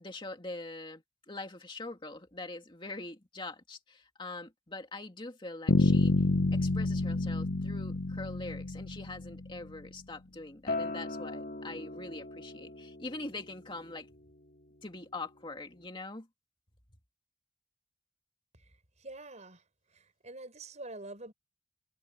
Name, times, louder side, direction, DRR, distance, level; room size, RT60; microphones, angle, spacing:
voice 1, 0.0-6.1 6.5-14.1 14.8-16.3, left 2 dB, 25° left, 2.4 m, -43 dB
Bass guitar, 5.7-9.6, left 2 dB, 80° left, 0.9 m, -28 dB
Acoustic guitar, 10.7-15.9, left 2 dB, 50° left, 2.8 m, -41 dB
voice 2, 19.0-19.6 19.9-21.3, right 2 dB, 35° right, 6.2 m, -46 dB
head